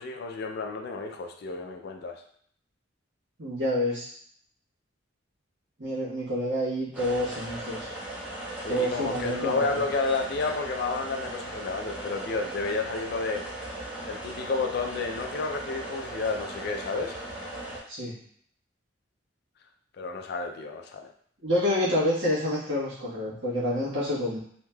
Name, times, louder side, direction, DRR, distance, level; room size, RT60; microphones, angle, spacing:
voice 1, 0.0-2.2 8.6-13.5 14.0-17.2 20.0-21.1, left 3 dB, 55° left, 4 dB, 0.3 m, -31 dB
voice 2, 3.4-4.1 5.8-7.9 8.7-9.8 17.9-18.2 21.4-24.4, left 1 dB, 70° right, -8 dB, 1.3 m, -28 dB
sound 1, 6.9-17.8, right 1 dB, 5° right, 0.6 m, -38 dB
3.2 x 2.8 x 2.2 m, 0.62 s
head